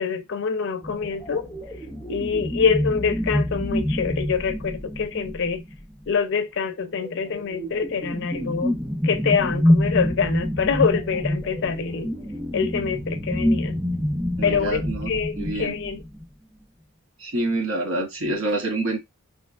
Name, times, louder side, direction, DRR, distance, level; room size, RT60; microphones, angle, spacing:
voice 1, 0.0-1.5 2.1-5.6 6.1-12.1 12.5-13.8 14.4-16.0, left 6 dB, 55° left, 0.4 m, -25 dB
sound 1, 0.8-6.0 6.9-16.2, left 1 dB, ahead, 0.5 m, -27 dB
voice 2, 14.4-15.1 15.4-15.7 17.2-19.0, right 2 dB, 65° right, 0.8 m, -26 dB
3.5 x 2.6 x 2.3 m
head